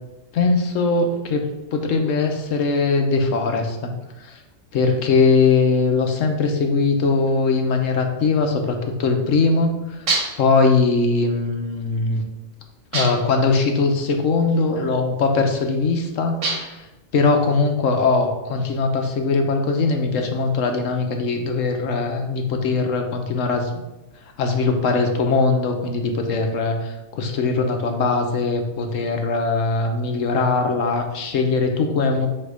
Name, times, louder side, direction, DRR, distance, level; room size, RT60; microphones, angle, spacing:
voice 1, 0.3-1.4 1.7-3.9 4.2-4.4 4.7-10.1 10.4-12.2 12.9-16.9 17.1-23.7 24.4-32.3, left 4 dB, 85° left, 4 dB, 1.2 m, -21 dB
sound 1, 10.1-10.5 12.9-13.4 16.4-16.9, right 3 dB, 75° right, 1.6 m, -25 dB
7.6 x 2.9 x 4.8 m, 1.0 s
omnidirectional pair, 1.3 m